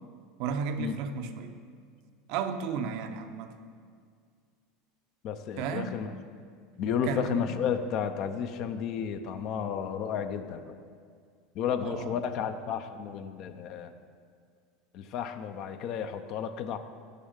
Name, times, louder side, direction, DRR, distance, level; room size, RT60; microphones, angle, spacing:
voice 1, 0.4-1.6 2.3-3.6 5.6-5.9 7.0-7.6 11.8-12.1, right 6 dB, 60° right, 8 dB, 0.6 m, -33 dB
voice 2, 5.2-6.1 6.8-10.8 11.5-13.9 14.9-16.8, left 7 dB, 55° left, 9 dB, 0.5 m, -32 dB
6.6 x 5.5 x 6.4 m, 2.1 s
hypercardioid pair, 80°, 0 cm